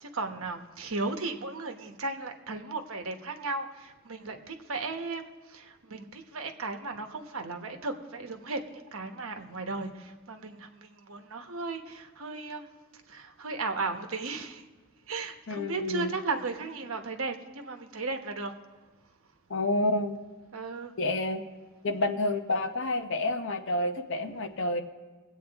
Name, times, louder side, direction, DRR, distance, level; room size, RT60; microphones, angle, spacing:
voice 1, 0.0-5.2 5.5-12.6 13.1-14.6 15.1-18.5 20.5-20.9, right 3 dB, 75° right, 5 dB, 1.1 m, -35 dB
voice 2, 15.5-16.2 19.5-20.2 21.0-21.4 21.8-24.8, left 2 dB, 60° left, 7 dB, 0.9 m, -29 dB
22.0 x 8.5 x 3.5 m, 1.3 s
head